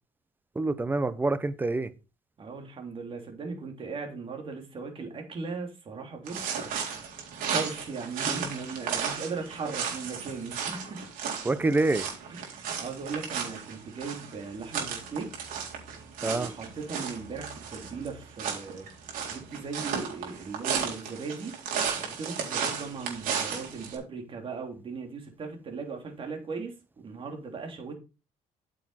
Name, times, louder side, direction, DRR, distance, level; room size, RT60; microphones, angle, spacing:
voice 1, 0.5-1.9 11.4-12.1 16.2-16.5, right 2 dB, 15° right, 0.8 m, -26 dB
voice 2, 2.4-7.0 7.5-11.0 12.3-15.3 16.2-18.9 19.3-21.6 22.0-28.0, right 4 dB, 40° right, 3.3 m, -38 dB
sound 1, 6.3-23.9, right 7 dB, 75° right, 3.7 m, -34 dB
8.8 x 6.5 x 4.2 m
cardioid pair, 115°, 14 cm